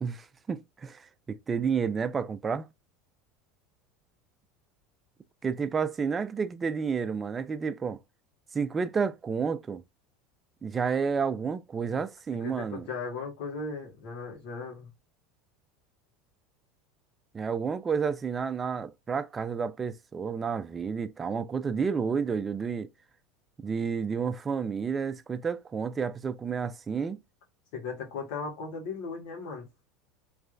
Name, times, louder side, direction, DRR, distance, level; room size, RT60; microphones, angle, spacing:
voice 1, 0.0-2.7 5.4-8.0 8.5-9.8 10.6-12.9 17.3-22.9 23.6-27.2, right 6 dB, 25° right, 0.4 m, -30 dB
voice 2, 12.4-14.9 27.7-29.7, left 4 dB, 75° left, 1.8 m, -37 dB
3.3 x 3.1 x 2.5 m
supercardioid pair, 110°, 0 cm